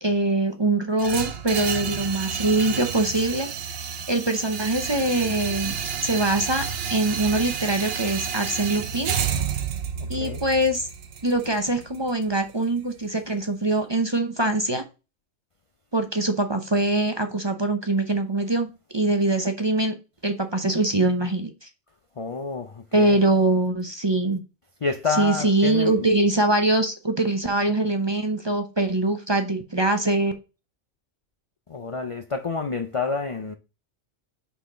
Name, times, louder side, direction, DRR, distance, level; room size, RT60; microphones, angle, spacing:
voice 1, 0.0-3.5 4.1-5.8 6.0-6.6 6.9-9.1 10.1-10.9 11.2-14.8 15.9-20.0 20.2-21.7 22.9-24.4 25.1-30.3, right 2 dB, 25° right, 0.7 m, -23 dB
sound 1, 1.0-13.0, right 7 dB, 55° right, 0.9 m, -30 dB
voice 2, 10.0-10.5 22.2-23.2 24.8-26.1 31.7-33.5, left 4 dB, 45° left, 0.4 m, -29 dB
5.7 x 4.1 x 5.0 m
omnidirectional pair, 1.3 m